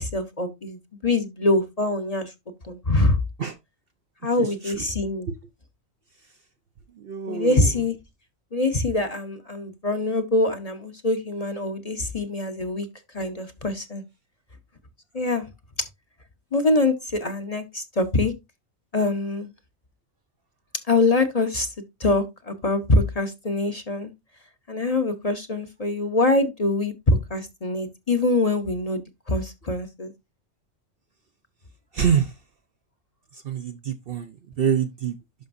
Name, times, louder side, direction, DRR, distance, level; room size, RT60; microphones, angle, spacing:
voice 1, 0.0-2.3 2.6-3.2 4.2-5.3 7.3-8.0 8.5-12.9 13.1-14.0 15.1-15.5 16.5-18.3 18.9-19.5 20.9-21.7 22.0-24.1 24.7-29.0 29.3-30.1, left 2 dB, 35° left, 0.8 m, -24 dB
voice 2, 7.1-7.7 31.9-32.3 33.4-34.3 34.6-35.1, right 8 dB, 55° right, 0.7 m, -24 dB
11.5 x 5.2 x 2.6 m
omnidirectional pair, 1.4 m